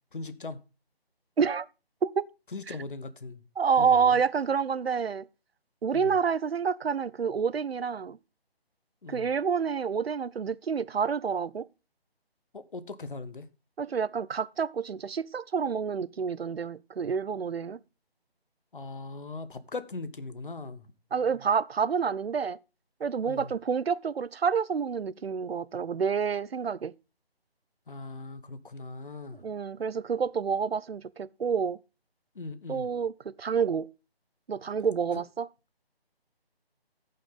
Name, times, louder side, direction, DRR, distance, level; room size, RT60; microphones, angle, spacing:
voice 1, 0.1-0.6 2.5-3.4 3.8-4.2 5.9-6.2 9.0-9.3 12.5-13.5 18.7-20.9 23.3-23.5 27.9-29.4 32.4-32.9, left 3 dB, 55° left, 0.9 m, -39 dB
voice 2, 1.4-1.7 2.0-2.3 2.7-2.8 3.6-5.3 5.8-8.2 9.1-11.7 13.8-17.8 21.1-22.6 23.0-26.9 29.3-31.8 32.7-33.9 34.5-35.5, right 6 dB, 75° right, 0.5 m, -28 dB
15.5 x 5.6 x 3.6 m
figure-of-eight pair, 155°, 31 cm